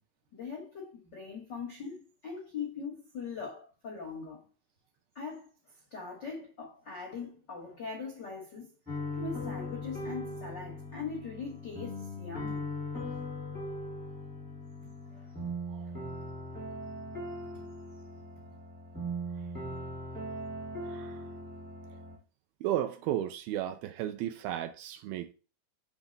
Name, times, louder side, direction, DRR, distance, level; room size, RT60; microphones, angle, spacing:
voice 1, 0.3-4.5 5.1-5.5 5.9-8.7 9.2-12.7 14.8-15.3 15.8-16.0 16.2-16.3 17.4-17.7 18.4-18.5, left 5 dB, 70° left, 1.0 m, -41 dB
sound 1, 8.8-22.2, left 1 dB, 10° right, 0.6 m, -39 dB
voice 2, 20.9-21.2 22.6-25.3, right 12 dB, 80° right, 2.3 m, -34 dB
7.2 x 3.4 x 5.2 m
omnidirectional pair, 4.6 m